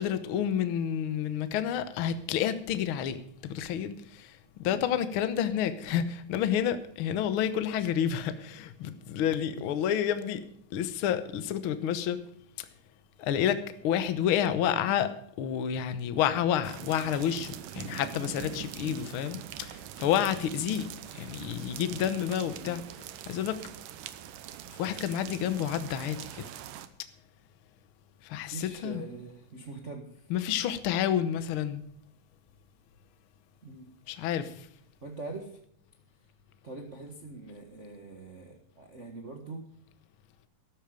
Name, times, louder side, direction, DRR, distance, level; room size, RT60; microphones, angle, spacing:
voice 1, 0.0-10.4 10.7-12.2 12.6-12.7 13.2-22.8 23.2-23.6 24.7-26.5 28.2-29.0 30.3-31.8 34.1-34.7, left 9 dB, 85° left, 1.1 m, -29 dB
voice 2, 4.6-5.1 18.8-19.1 22.6-22.8 28.4-30.3 33.6-33.9 35.0-35.6 36.6-39.7, right 3 dB, 50° right, 0.8 m, -43 dB
sound 1, 16.6-26.9, right 11 dB, 75° right, 2.3 m, -43 dB
13.5 x 12.0 x 5.1 m
omnidirectional pair, 3.9 m